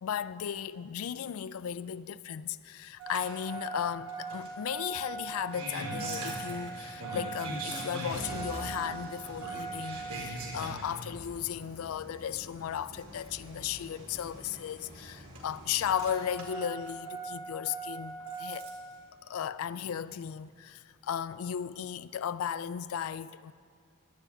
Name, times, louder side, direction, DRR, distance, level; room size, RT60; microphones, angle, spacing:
voice 1, 0.0-18.7 19.2-23.5, left 9 dB, 70° left, 0.3 m, -35 dB
Engine starting, 3.0-18.9 20.2-20.3, right 3 dB, 80° right, 2.4 m, -40 dB
16.0 x 11.0 x 3.5 m
head